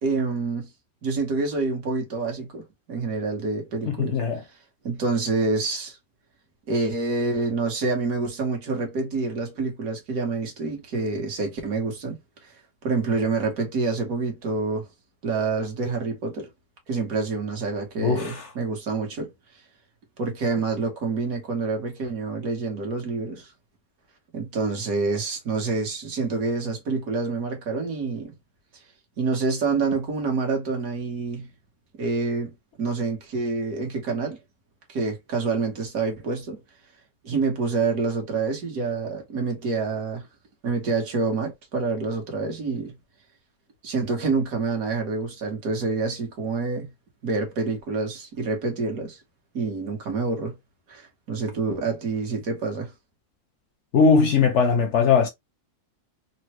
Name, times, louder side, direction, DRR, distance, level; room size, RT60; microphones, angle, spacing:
voice 1, 0.0-0.7 1.0-4.2 4.8-6.0 6.7-12.2 12.8-14.9 15.2-16.5 16.9-19.3 20.2-23.5 24.3-28.3 29.2-31.5 32.0-34.4 34.9-36.6 37.2-40.3 40.6-42.9 43.8-46.9 47.2-49.2 49.5-50.6 50.9-52.9, right 4 dB, 70° right, 1.5 m, -27 dB
voice 2, 3.9-4.4 18.0-18.5 53.9-55.3, left 5 dB, 65° left, 0.7 m, -20 dB
3.8 x 2.1 x 2.9 m
omnidirectional pair, 1.6 m